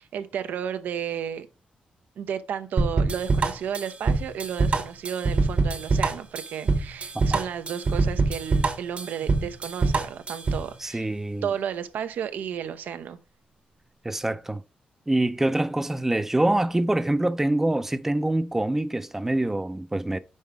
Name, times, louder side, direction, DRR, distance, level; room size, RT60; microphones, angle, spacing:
voice 1, 0.0-1.5 2.2-11.1 11.4-13.2, right 8 dB, 85° right, 0.6 m, -33 dB
sound 1, 2.8-10.7, right 3 dB, 45° right, 1.0 m, -24 dB
voice 2, 10.8-11.5 14.0-14.6 15.1-20.2, right 1 dB, 10° right, 0.4 m, -25 dB
5.5 x 4.5 x 4.8 m
cardioid pair, 110°, 3 cm